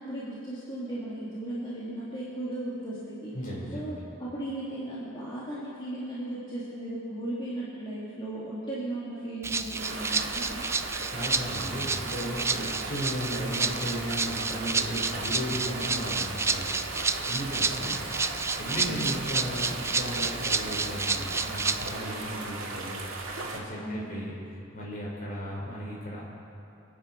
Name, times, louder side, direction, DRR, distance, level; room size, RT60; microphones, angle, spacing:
voice 1, 0.0-3.3 3.7-10.7 18.8-19.1 23.8-24.2, right 1 dB, 25° left, -9 dB, 2.5 m, -36 dB
voice 2, 3.3-4.0 11.1-17.0 17.3-18.0 18.6-23.0 23.5-24.3 24.7-26.2, equal, 45° left, -4 dB, 4.7 m, -35 dB
Rattle (instrument), 9.4-22.0, right 4 dB, 15° right, 0.4 m, -30 dB
sound 1, 9.8-23.6, right 3 dB, 75° right, 2.2 m, -37 dB
27.5 x 10.0 x 4.5 m, 2.7 s
head